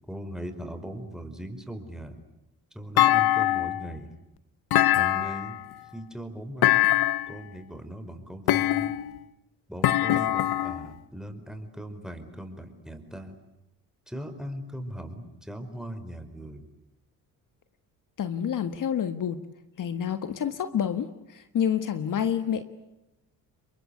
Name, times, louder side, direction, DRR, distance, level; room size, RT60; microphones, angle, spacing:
voice 1, 0.1-2.2 2.7-4.1 4.9-5.6 5.9-6.9 7.3-9.0 9.7-13.4 14.1-16.7, equal, ahead, 7 dB, 5.3 m, -39 dB
Thump thud, 3.0-3.9 4.7-5.6 6.6-7.4 8.5-9.2 9.8-10.9, left 15 dB, 70° left, 1.1 m, -23 dB
voice 2, 18.2-19.5 19.8-22.7, left 8 dB, 50° left, 10 dB, 1.7 m, -28 dB
29.5 x 23.0 x 8.3 m, 0.93 s
supercardioid pair, 80°, 39 cm